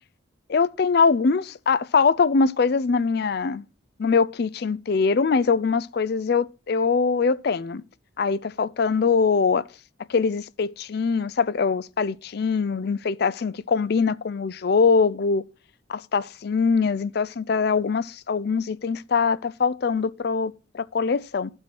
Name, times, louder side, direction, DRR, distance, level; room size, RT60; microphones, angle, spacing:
voice 1, 0.5-3.7 4.0-7.8 8.2-9.6 10.1-15.4 15.9-21.5, left 5 dB, 50° left, 0.4 m, -23 dB
12.0 x 4.4 x 6.0 m
head